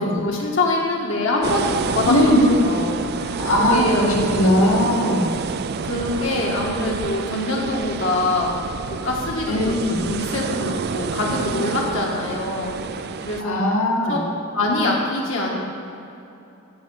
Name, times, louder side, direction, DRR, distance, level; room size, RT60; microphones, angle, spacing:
voice 1, 0.0-2.1 2.6-4.0 4.6-4.9 5.8-8.5 8.9-9.7 10.0-12.8 13.2-13.6 13.9-14.2 14.5-15.5, left 2 dB, 60° left, -2 dB, 1.5 m, -24 dB
sound 1, 1.4-13.4, right 5 dB, 45° right, 0.3 m, -28 dB
voice 2, 2.1-2.7 3.4-5.3 9.5-10.0 13.4-14.2, left 1 dB, 80° left, -2 dB, 2.0 m, -19 dB
14.5 x 6.2 x 5.5 m, 2.8 s
head